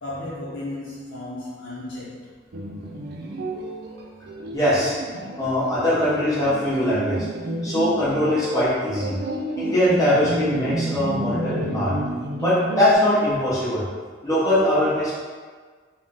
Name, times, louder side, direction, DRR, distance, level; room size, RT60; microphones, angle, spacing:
voice 1, 0.0-2.3, left 1 dB, 75° left, -8 dB, 0.8 m, -34 dB
sound 1, 2.5-12.9, right 1 dB, 55° right, 0.4 m, -30 dB
voice 2, 4.5-4.9 5.4-7.3 7.6-9.2 9.6-11.9 12.4-13.8 14.2-15.2, left 1 dB, 20° left, -9 dB, 1.1 m, -21 dB
3.7 x 2.3 x 3.8 m, 1.5 s
head